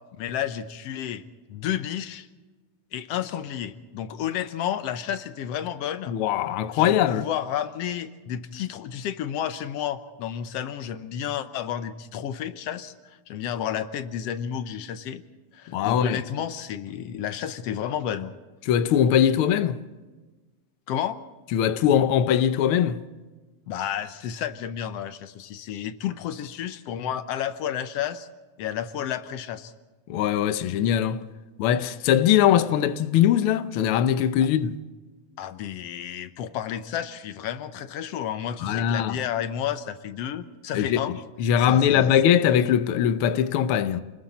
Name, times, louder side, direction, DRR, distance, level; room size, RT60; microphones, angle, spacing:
voice 1, 0.2-1.2 1.5-2.3 2.9-6.1 6.7-15.2 15.5-18.3 20.9-21.2 23.7-28.3 28.6-29.7 35.4-41.2 41.6-42.1, left 10 dB, 65° left, 1.8 m, -31 dB
voice 2, 6.1-7.3 15.7-16.2 18.6-19.8 21.5-23.0 30.1-31.2 31.6-34.8 38.6-39.2 40.7-44.0, left 9 dB, 85° left, 1.2 m, -21 dB
29.0 x 20.5 x 4.3 m
omnidirectional pair, 3.5 m